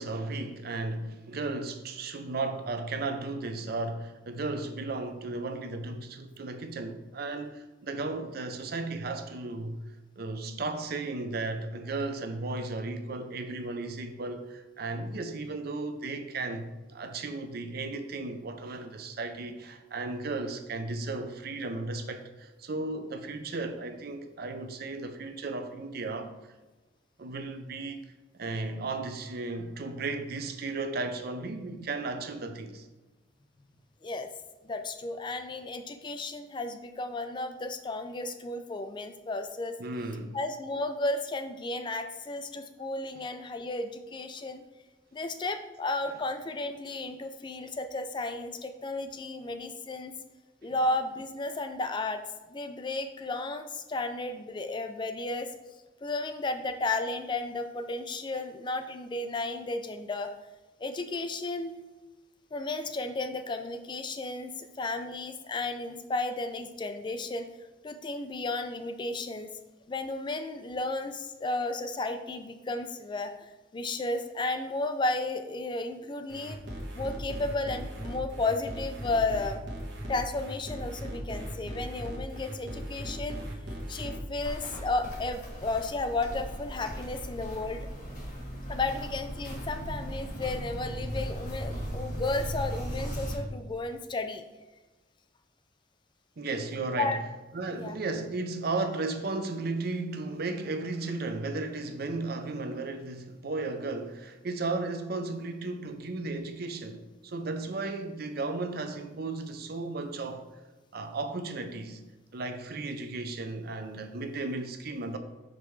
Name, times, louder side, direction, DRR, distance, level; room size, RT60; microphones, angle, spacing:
voice 1, 0.0-9.8 10.2-26.3 27.2-28.1 28.4-32.9 39.8-40.4 43.1-43.2 50.7-50.8 96.4-97.2 97.5-110.5 110.9-112.0 112.3-115.2, right 3 dB, 55° right, 0.6 m, -35 dB
voice 2, 34.6-39.8 40.3-44.6 45.1-50.1 50.6-52.2 52.5-55.5 56.0-60.3 60.8-61.7 62.5-67.5 67.8-69.5 69.9-76.6 77.0-79.6 80.1-83.4 83.7-87.9 88.7-94.4 97.0-97.2 97.7-97.9, left 2 dB, 25° left, 0.4 m, -33 dB
sound 1, 76.3-84.2, equal, 80° right, 1.3 m, -38 dB
Walk footsteps, 84.4-93.4, equal, 50° left, 1.8 m, -37 dB
5.7 x 5.2 x 3.2 m
head